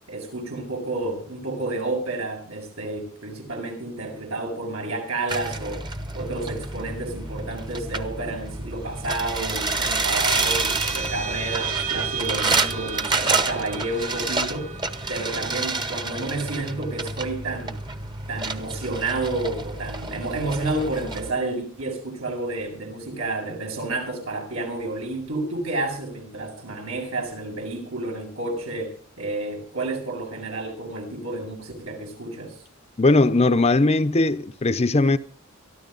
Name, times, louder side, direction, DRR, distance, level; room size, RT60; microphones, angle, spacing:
voice 1, 0.1-5.8 6.1-14.7 15.1-17.8 18.3-32.6, right 2 dB, 80° right, 7.7 m, -30 dB
sound 1, 5.3-21.3, right 3 dB, 20° right, 1.0 m, -29 dB
sound 2, 8.6-19.3, right 6 dB, 45° right, 2.1 m, -35 dB
voice 2, 33.0-35.2, left 2 dB, 30° left, 0.7 m, -19 dB
23.0 x 13.5 x 4.0 m
head